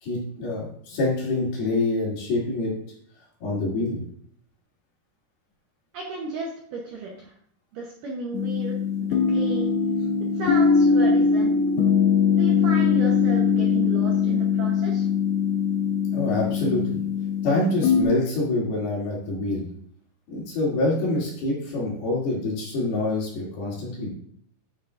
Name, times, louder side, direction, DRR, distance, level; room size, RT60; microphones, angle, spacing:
voice 1, 0.0-2.7 3.4-4.0 16.1-17.0 17.4-19.6 20.3-24.1, left 2 dB, 60° left, -5 dB, 4.7 m, -26 dB
voice 2, 5.9-7.3 7.7-9.7 10.4-11.5 12.3-15.1, right 3 dB, 65° right, -3 dB, 2.2 m, -34 dB
sound 1, 8.3-18.0, left 6 dB, 80° left, 2.7 m, -21 dB
9.6 x 9.5 x 2.6 m, 0.63 s
omnidirectional pair, 5.0 m